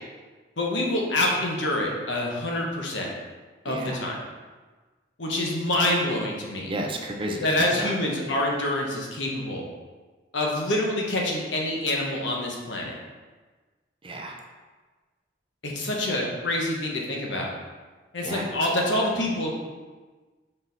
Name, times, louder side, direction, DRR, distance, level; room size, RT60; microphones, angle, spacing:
voice 1, 0.6-3.1 3.6-4.2 5.2-6.7 7.4-9.6 10.3-12.9 15.6-17.5 18.1-19.5, left 1 dB, 75° left, -1 dB, 1.2 m, -26 dB
voice 2, 3.7-4.0 6.7-7.9 14.0-14.4 18.2-18.5, right 1 dB, 30° right, 2 dB, 0.6 m, -32 dB
5.5 x 4.5 x 4.1 m, 1.3 s
head